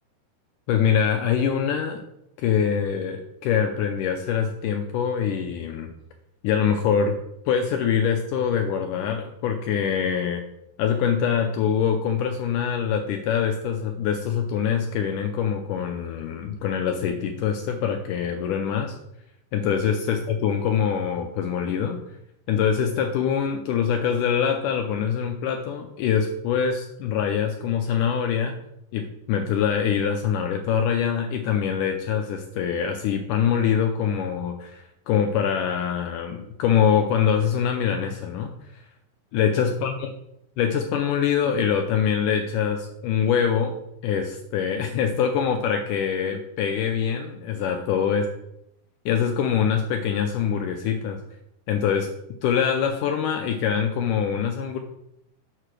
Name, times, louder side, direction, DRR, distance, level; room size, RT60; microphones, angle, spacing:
voice 1, 0.7-2.0 2.4-5.9 6.4-7.2 7.5-10.4 10.8-19.0 19.5-22.0 22.5-28.6 28.9-38.5 39.3-40.1 40.6-43.8 44.0-48.3 49.1-51.2 51.7-52.1 52.4-54.8, left 7 dB, 80° left, 4 dB, 1.9 m, -24 dB
6.7 x 4.9 x 6.0 m, 0.80 s
omnidirectional pair, 4.1 m